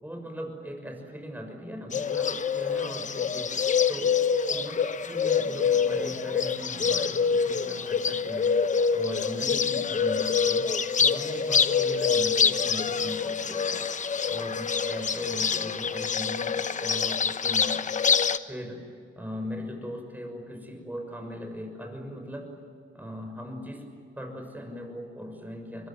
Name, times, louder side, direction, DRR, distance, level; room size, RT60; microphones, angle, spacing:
voice 1, 0.0-4.2 4.5-13.8 14.2-17.8 18.4-18.8 19.1-22.5 22.9-23.9 24.2-25.9, equal, 10° right, 4 dB, 6.4 m, -39 dB
Bird, 1.9-18.4, left 6 dB, 40° left, 1.0 m, -26 dB
25.0 x 22.0 x 9.3 m, 2.4 s
cardioid pair, 90°, 20 cm